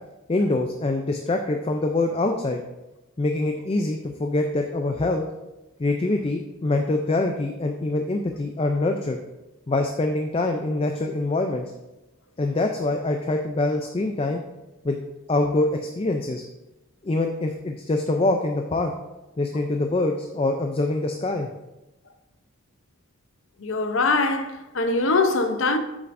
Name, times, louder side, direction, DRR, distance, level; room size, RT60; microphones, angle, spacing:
voice 1, 0.3-2.6 3.2-5.2 5.8-9.2 9.7-11.7 12.4-14.4 14.8-15.0 15.3-16.4 17.0-18.9 19.4-21.5, left 2 dB, 25° left, 0.4 m, -24 dB
voice 2, 23.6-25.8, left 3 dB, 65° left, 0.7 m, -22 dB
8.8 x 6.7 x 2.6 m
head